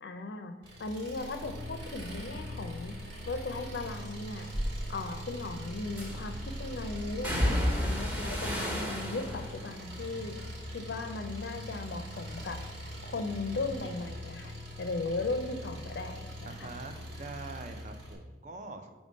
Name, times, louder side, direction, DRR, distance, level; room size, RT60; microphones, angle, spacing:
voice 1, 0.0-0.5 0.8-3.0 3.3-4.5 4.9-10.4 10.7-12.6 13.0-16.7, left 3 dB, 65° left, 7 dB, 0.5 m, -37 dB
Engine, 0.6-18.1, equal, 75° right, 1.3 m, -42 dB
sound 1, 1.1-7.3, right 1 dB, 60° right, 0.9 m, -47 dB
sound 2, 4.5-4.7 6.0-6.4 7.2-11.5 11.8-12.4 12.8-16.1 16.4-17.5 17.8-17.9, equal, 10° right, 0.7 m, -35 dB
voice 2, 16.4-18.9, right 3 dB, 40° right, 6 dB, 0.5 m, -44 dB
5.2 x 3.5 x 5.1 m, 1.2 s
head